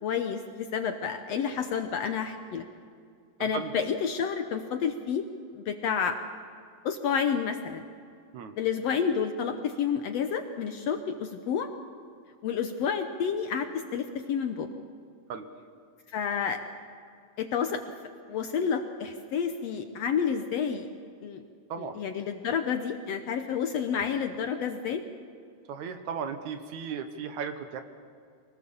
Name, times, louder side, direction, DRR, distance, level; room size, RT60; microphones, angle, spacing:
voice 1, 0.0-2.7 3.4-5.2 5.5-6.2 6.8-7.8 8.6-11.7 12.4-14.7 16.1-16.6 17.4-17.8 18.3-20.9 21.2-21.4 21.8-25.0, left 7 dB, 65° left, 6 dB, 1.7 m, -30 dB
voice 2, 21.7-22.0 25.7-27.8, right 6 dB, 70° right, 8 dB, 2.4 m, -36 dB
24.5 x 19.0 x 7.1 m, 2.3 s
omnidirectional pair, 3.7 m